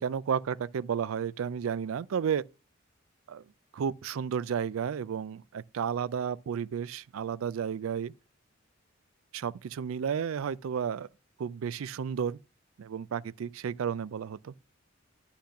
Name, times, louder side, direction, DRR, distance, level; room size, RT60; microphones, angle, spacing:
voice 1, 0.0-2.4 3.3-3.4 3.7-8.1 9.3-11.1 11.4-12.4 12.8-14.5, right 7 dB, 85° right, 0.4 m, -32 dB
10.0 x 5.9 x 5.7 m
head